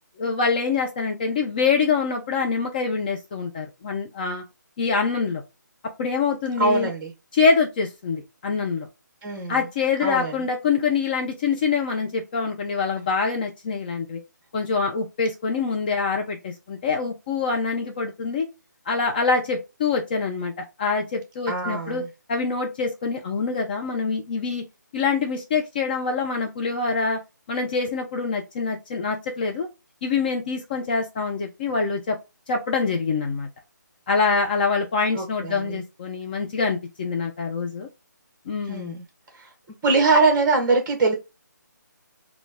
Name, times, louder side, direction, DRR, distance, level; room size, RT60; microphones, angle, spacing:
voice 1, 0.2-4.4 4.8-5.4 6.0-6.9 7.3-8.9 9.5-14.2 14.5-18.5 18.9-22.0 22.3-24.6 24.9-27.2 27.5-29.7 30.0-32.2 32.5-33.5 34.1-37.9 38.5-39.0, left 5 dB, 30° left, 0.5 m, -25 dB
voice 2, 6.6-7.1 9.2-9.6 10.0-10.4 21.5-22.1 35.1-35.8 38.7-39.0 39.4-39.5 39.8-41.1, right 3 dB, 15° right, 1.2 m, -22 dB
3.9 x 2.3 x 3.6 m
figure-of-eight pair, 145°, 10 cm